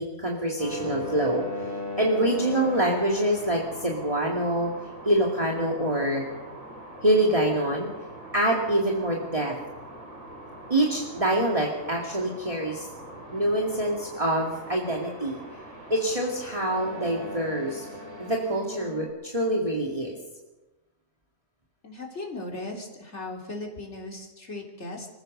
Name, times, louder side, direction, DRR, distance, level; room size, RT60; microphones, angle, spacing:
voice 1, 0.0-1.4 2.0-4.7 5.1-6.2 7.0-7.9 8.3-9.5 10.7-12.9 13.3-15.4 15.9-17.9 18.2-20.2, right 1 dB, 25° right, -1 dB, 2.4 m, -25 dB
sound 1, 0.6-19.1, left 1 dB, 70° right, 6.0 m, -40 dB
voice 2, 21.8-25.1, left 2 dB, 50° left, 0 dB, 3.9 m, -37 dB
25.5 x 15.5 x 6.7 m, 1.1 s
omnidirectional pair, 1.5 m